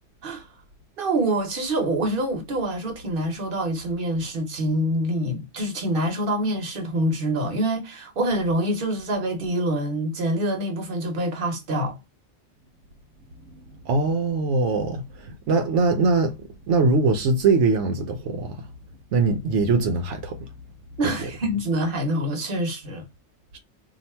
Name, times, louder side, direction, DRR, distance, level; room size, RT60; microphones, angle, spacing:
voice 1, 1.0-12.0 21.0-23.1, right 1 dB, 50° right, 1.1 m, -26 dB
voice 2, 13.8-16.3 16.7-18.6 19.1-20.4, right 3 dB, 85° right, 1.0 m, -22 dB
2.8 x 2.4 x 4.2 m
omnidirectional pair, 1.2 m